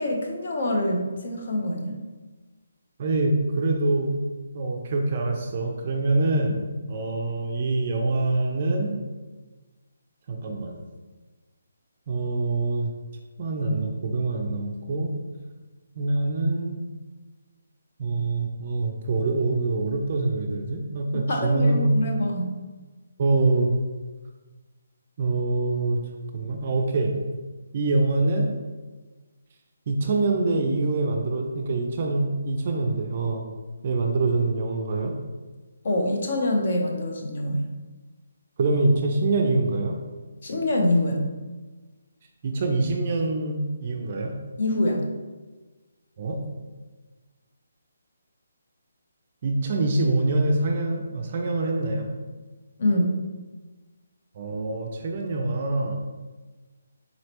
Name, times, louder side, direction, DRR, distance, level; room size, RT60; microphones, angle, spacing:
voice 1, 0.0-2.0 21.3-22.5 35.8-37.6 40.4-41.2 44.6-45.1 52.8-53.2, left 1 dB, 45° left, 1 dB, 0.6 m, -25 dB
voice 2, 3.0-4.1 4.5-6.6 6.9-8.9 10.3-10.8 12.1-12.9 13.4-15.1 15.9-16.8 18.0-21.9 23.2-23.7 25.2-26.0 26.3-27.1 27.7-28.5 29.9-33.5 33.8-35.1 38.6-40.0 42.4-44.3 46.2-46.4 49.4-52.1 54.4-56.0, right 2 dB, 30° right, 2 dB, 0.4 m, -25 dB
4.0 x 3.1 x 2.9 m, 1.3 s
hypercardioid pair, 175°, 0 cm